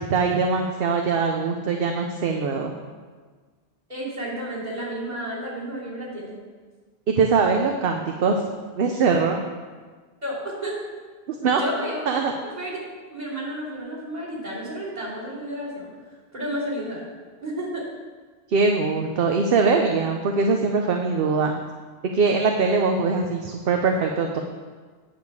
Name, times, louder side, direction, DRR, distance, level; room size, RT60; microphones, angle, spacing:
voice 1, 0.0-2.7 7.1-8.4 8.8-9.4 11.3-11.6 12.1-12.3 18.5-21.5 22.0-24.4, right 4 dB, 60° right, 3 dB, 0.8 m, -22 dB
voice 2, 3.9-6.4 10.2-10.8 11.6-12.2 12.4-12.8 13.1-15.9 16.3-17.0 17.4-17.9, equal, 35° right, -6 dB, 2.8 m, -31 dB
9.2 x 7.0 x 4.7 m, 1.5 s
omnidirectional pair, 1.2 m